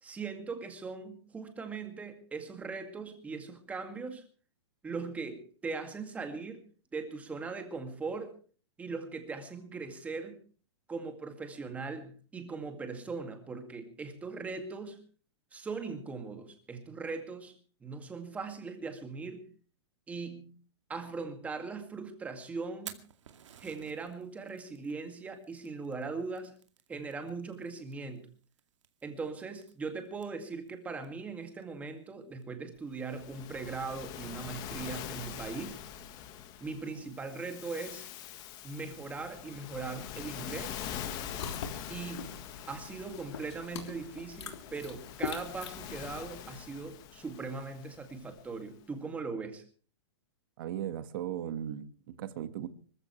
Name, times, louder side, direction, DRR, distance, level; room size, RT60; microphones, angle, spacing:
voice 1, 0.0-4.2 4.8-6.6 6.9-8.4 8.8-10.4 10.9-15.0 15.5-19.5 20.1-20.5 20.9-23.0 23.6-26.6 26.9-28.3 29.0-35.8 36.6-38.1 38.6-40.8 41.9-42.4 42.7-49.6, right 4 dB, 10° right, 2.1 m, -40 dB
Fire, 22.6-34.0, right 9 dB, 80° right, 2.2 m, -56 dB
Waves surf, 33.0-48.5, left 9 dB, 25° left, 1.5 m, -44 dB
sound 1, 41.0-46.6, left 6 dB, 65° left, 3.4 m, -43 dB
voice 2, 50.6-52.7, right 10 dB, 45° right, 1.6 m, -37 dB
25.0 x 14.5 x 3.2 m
hypercardioid pair, 165°, 15 cm